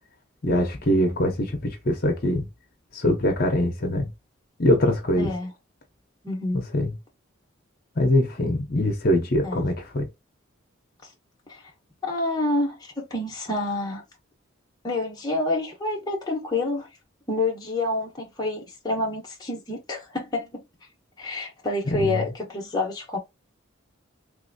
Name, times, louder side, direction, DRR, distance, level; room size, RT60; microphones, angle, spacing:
voice 1, 0.4-2.5 2.9-4.1 4.6-5.3 6.5-6.9 8.0-10.1 21.9-22.3, left 1 dB, 45° left, 0.8 m, -23 dB
voice 2, 5.1-5.5 6.2-6.6 9.4-9.7 11.5-11.6 12.0-14.0 14.8-16.9 17.3-20.6 21.2-23.2, left 2 dB, 20° left, 0.9 m, -28 dB
3.4 x 2.7 x 2.6 m
head